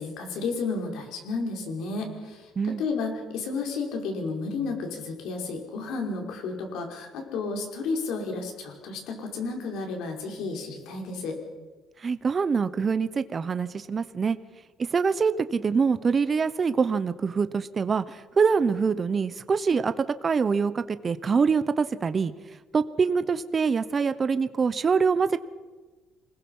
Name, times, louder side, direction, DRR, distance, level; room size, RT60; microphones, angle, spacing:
voice 1, 0.0-11.4, left 4 dB, 85° left, 3 dB, 5.2 m, -32 dB
voice 2, 12.0-14.4 14.8-22.3 22.7-25.4, right 5 dB, 30° right, 13 dB, 0.9 m, -25 dB
27.0 x 21.0 x 5.6 m, 1.3 s
cardioid pair, 140°, 0 cm